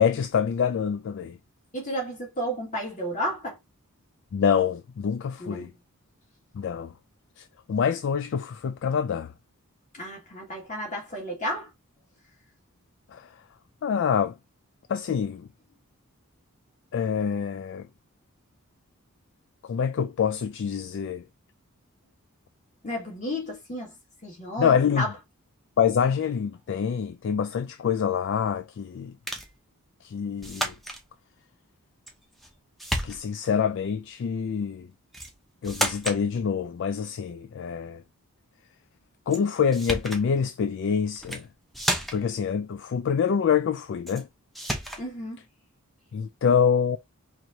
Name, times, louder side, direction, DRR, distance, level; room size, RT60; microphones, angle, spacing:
voice 1, 0.0-1.4 4.3-5.7 6.5-6.9 7.4-9.3 13.1-13.3 13.8-14.3 14.9-15.5 16.9-17.9 19.6-21.2 24.6-25.1 25.8-29.1 30.0-30.7 33.0-34.9 35.6-38.0 39.3-41.5 42.1-44.3 46.1-47.0, left 7 dB, 55° left, 0.3 m, -26 dB
voice 2, 1.7-3.6 5.4-5.7 9.9-11.7 22.8-23.9 24.2-25.1 45.0-45.4, equal, 35° left, 1.9 m, -32 dB
sound 1, 29.3-29.5 30.4-31.0 32.1-32.5 32.8-33.5 35.1-35.3 35.6-36.2 39.3-39.4 39.7-40.2 41.2-41.4 41.7-42.4 44.1-44.2 44.6-45.1, equal, ahead, 0.7 m, -31 dB
4.7 x 2.9 x 2.7 m
head